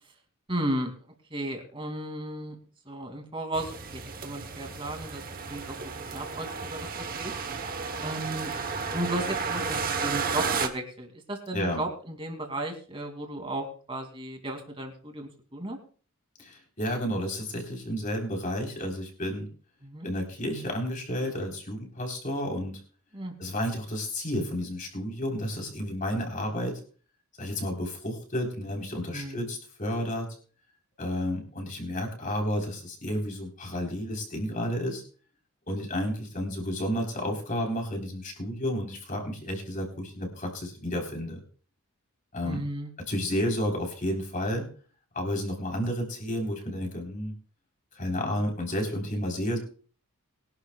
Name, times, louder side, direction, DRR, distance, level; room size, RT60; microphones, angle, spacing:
voice 1, 0.5-0.9 1.3-2.6 2.9-5.2 5.5-5.8 6.1-7.4 8.0-8.5 8.9-15.8 19.8-20.1 23.1-23.5 29.1-29.5 42.4-42.9, right 1 dB, 25° right, 4 dB, 2.6 m, -34 dB
sound 1, 3.5-10.7, right 5 dB, 40° right, 1.1 m, -33 dB
voice 2, 16.4-19.5 20.0-22.8 23.4-26.8 27.4-30.3 31.0-35.0 35.7-41.4 42.3-42.6 43.1-44.7 45.1-47.3 48.0-49.6, equal, 35° left, 1 dB, 4.0 m, -31 dB
22.5 x 11.5 x 2.4 m, 0.40 s
head